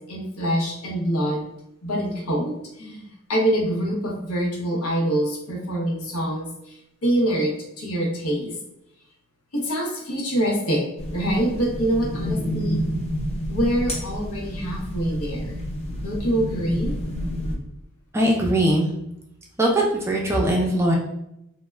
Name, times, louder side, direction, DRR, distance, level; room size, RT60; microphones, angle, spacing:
voice 1, 0.1-1.5 1.8-8.6 9.5-12.8 13.5-15.6 16.0-16.9, right 1 dB, 90° left, -1 dB, 0.8 m, -25 dB
sound 1, 11.0-17.5, equal, 30° left, 0.6 m, -29 dB
voice 2, 18.1-18.9 19.6-21.0, right 1 dB, 10° right, -1 dB, 0.4 m, -20 dB
2.2 x 2.1 x 3.1 m, 0.81 s
head